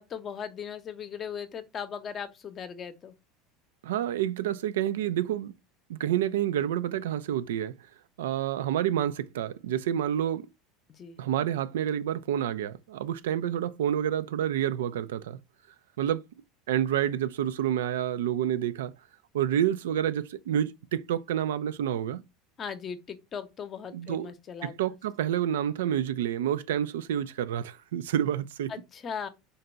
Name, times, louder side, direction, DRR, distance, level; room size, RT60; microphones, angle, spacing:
voice 1, 0.0-3.1 11.0-11.2 22.6-24.7 28.7-29.3, left 7 dB, 35° left, 0.7 m, -38 dB
voice 2, 3.8-5.5 5.9-7.7 8.2-10.4 11.2-15.4 16.0-16.2 16.7-18.9 19.3-22.2 23.9-24.3 24.6-28.7, right 10 dB, 90° right, 0.3 m, -28 dB
3.8 x 2.2 x 3.9 m
supercardioid pair, 110°, 0 cm